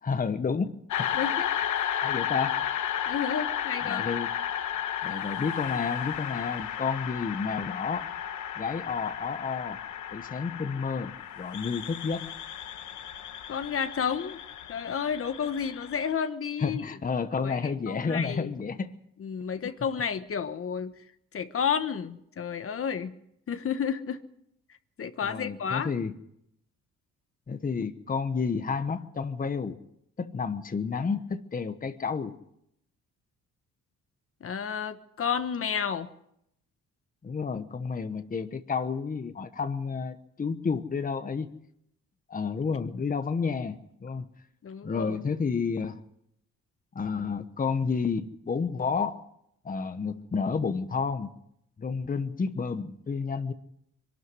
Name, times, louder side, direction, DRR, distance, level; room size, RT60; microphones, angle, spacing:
voice 1, 0.0-1.3 2.0-2.6 3.8-4.3 5.0-8.1 8.6-9.8 10.1-12.3 16.6-18.9 25.2-26.2 27.5-29.8 30.2-32.3 37.2-41.5 42.3-44.3 44.8-46.0 46.9-49.2 49.6-51.3 51.8-53.5, left 5 dB, 30° left, 10 dB, 1.1 m, -30 dB
sound 1, 0.9-16.1, left 10 dB, 75° left, 1.3 m, -33 dB
voice 2, 1.1-1.7 3.0-4.1 13.5-14.4 14.7-16.8 17.4-18.5 19.2-20.9 21.3-23.1 23.5-24.2 25.0-25.9 34.4-36.1 44.6-45.2, left 7 dB, 45° left, 10 dB, 1.3 m, -31 dB
22.5 x 12.5 x 9.6 m, 0.77 s
cardioid pair, 90°, 30 cm